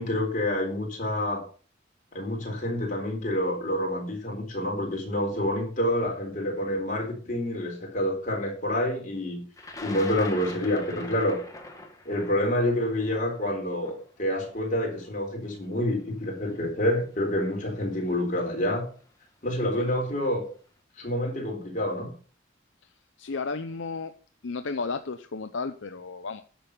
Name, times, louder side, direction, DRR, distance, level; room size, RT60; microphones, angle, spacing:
voice 1, 0.0-1.4 2.1-9.4 9.8-11.4 12.1-18.8 19.4-20.4 21.0-22.1, left 1 dB, 40° left, 0 dB, 4.1 m, -28 dB
Thunder, 9.6-15.6 16.5-16.6 17.7-18.0 18.3-18.8, left 2 dB, 15° left, 1.6 m, -43 dB
voice 2, 23.2-24.1 24.4-26.4, left 4 dB, 70° left, 9 dB, 0.6 m, -33 dB
10.0 x 6.9 x 5.6 m, 0.40 s
head